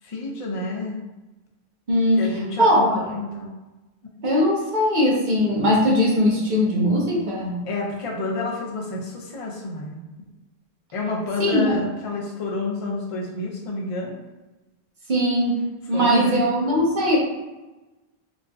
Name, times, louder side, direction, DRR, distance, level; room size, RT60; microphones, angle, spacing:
voice 1, 0.0-1.0 2.2-3.5 7.6-10.0 10.9-14.2 15.9-16.5, left 2 dB, 40° left, -1 dB, 0.5 m, -29 dB
voice 2, 1.9-2.2 2.6-3.0 4.2-7.6 11.4-11.8 15.1-15.6 15.9-17.2, equal, 50° right, -5 dB, 0.9 m, -20 dB
3.1 x 2.5 x 2.2 m, 1.1 s
omnidirectional pair, 1.1 m